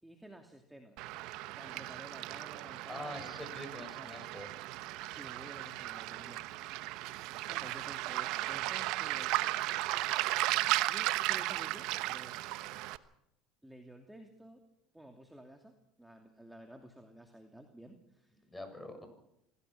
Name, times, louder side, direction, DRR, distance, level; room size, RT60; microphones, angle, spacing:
voice 1, 0.0-1.1 1.5-3.4 3.9-4.2 5.1-6.5 7.5-9.5 10.9-12.4 13.6-14.6 14.9-18.4, right 1 dB, 5° right, 4 dB, 2.7 m, -53 dB
Waves surf, 1.0-13.0, right 17 dB, 65° right, 1.0 m, -35 dB
voice 2, 2.9-4.5 18.5-19.1, left 1 dB, 10° left, 7 dB, 6.9 m, -45 dB
26.0 x 17.0 x 6.1 m, 0.80 s
hypercardioid pair, 80°, 0 cm